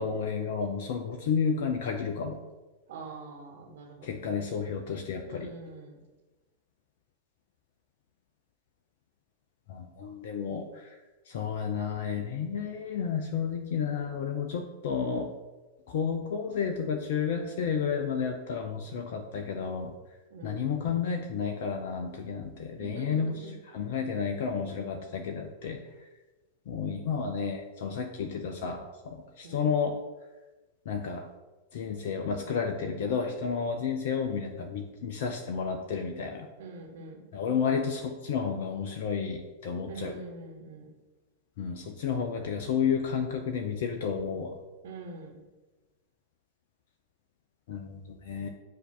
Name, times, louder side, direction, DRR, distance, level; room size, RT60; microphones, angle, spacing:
voice 1, 0.0-2.4 4.0-5.5 9.7-11.0 11.3-15.3 15.9-20.0 20.4-23.4 23.7-25.8 26.7-30.0 30.9-31.3 31.7-36.5 37.3-40.2 41.6-44.6 47.7-48.5, left 6 dB, 60° left, 4 dB, 0.6 m, -31 dB
voice 2, 2.9-4.5 5.2-6.0 20.3-20.8 22.8-23.6 29.4-29.8 36.6-37.2 39.9-40.9 44.8-45.4, right 3 dB, 60° right, 2 dB, 1.2 m, -44 dB
7.9 x 2.8 x 5.9 m, 1.2 s
figure-of-eight pair, 90°, 0 cm